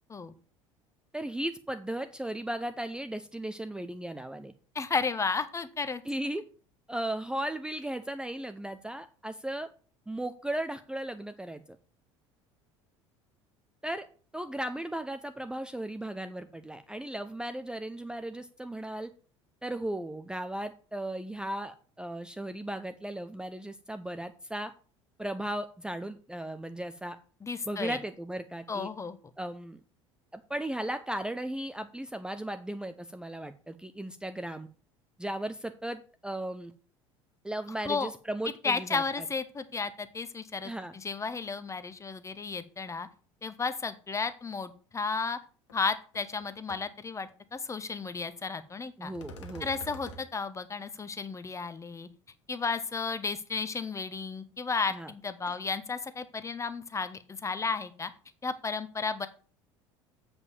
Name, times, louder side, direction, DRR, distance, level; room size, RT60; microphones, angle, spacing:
voice 1, 1.1-4.5 6.1-6.4 6.9-9.7 10.1-11.8 13.8-14.1 14.3-19.1 19.6-24.7 25.2-27.2 27.7-28.9 29.4-29.8 30.3-34.7 35.2-36.7 37.4-39.0 40.6-40.9 49.0-49.7 54.9-55.1 55.5-55.6, right 1 dB, 5° right, 9 dB, 0.7 m, -36 dB
voice 2, 4.7-6.0 27.4-28.0 28.7-29.2 37.8-38.1 38.6-43.1 43.4-45.4 45.7-49.1 49.6-52.1 52.5-58.1 58.4-59.3, left 4 dB, 20° left, 12 dB, 1.0 m, -33 dB
sound 1, 45.7-45.8 46.1-46.4 46.7-46.8 49.2-50.2, left 1 dB, 70° left, 1.7 m, -45 dB
8.0 x 5.3 x 7.2 m, 0.40 s
figure-of-eight pair, 65°, 16 cm